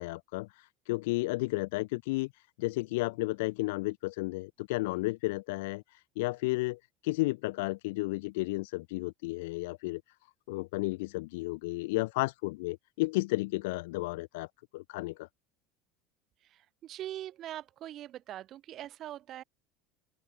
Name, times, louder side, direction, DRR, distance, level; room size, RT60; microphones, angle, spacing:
voice 1, 0.0-10.0 10.5-14.5 14.7-15.3, left 22 dB, 85° left, 0.3 m, -33 dB
voice 2, 16.4-19.4, right 12 dB, 35° right, 2.3 m, -42 dB
open air
cardioid pair, 170°, 0 cm